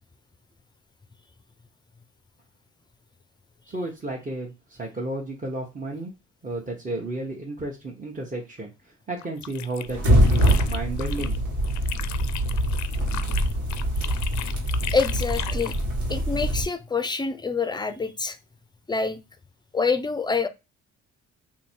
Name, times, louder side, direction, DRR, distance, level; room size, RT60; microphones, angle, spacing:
voice 1, 3.7-6.1 6.4-11.4, right 2 dB, 25° right, 1.0 m, -33 dB
sound 1, 9.2-11.4 11.6-15.8, left 12 dB, 70° left, 0.5 m, -36 dB
sound 2, 9.9-16.6, equal, 75° right, 1.9 m, -24 dB
voice 2, 14.9-15.7 16.1-18.4 18.9-19.2 19.7-20.5, left 4 dB, 15° left, 0.5 m, -26 dB
2.9 x 2.8 x 4.4 m
cardioid pair, 90°, 30 cm